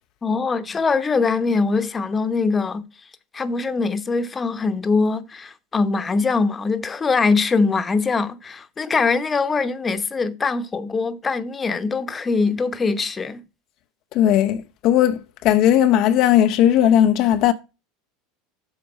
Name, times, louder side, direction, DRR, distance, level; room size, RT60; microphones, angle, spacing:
voice 1, 0.2-2.8 3.3-13.4, left 4 dB, 25° left, 0.9 m, -22 dB
voice 2, 14.1-17.5, left 11 dB, 55° left, 0.6 m, -17 dB
7.9 x 5.2 x 5.2 m
hypercardioid pair, 85°, 0 cm